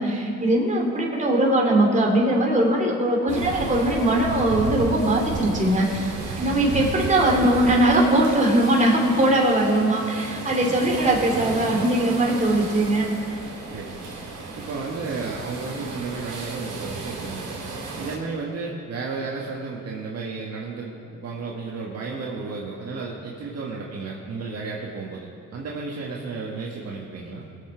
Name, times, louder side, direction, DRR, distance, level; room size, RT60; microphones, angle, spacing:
voice 1, 0.0-13.4, right 1 dB, 25° right, -1 dB, 2.8 m, -21 dB
sound 1, 3.3-18.2, right 3 dB, 80° right, 2.9 m, -33 dB
voice 2, 6.4-6.8 13.7-14.1 14.5-27.5, right 4 dB, 55° right, -3 dB, 1.6 m, -33 dB
20.5 x 7.1 x 4.6 m, 2.4 s
cardioid pair, 90°, 30 cm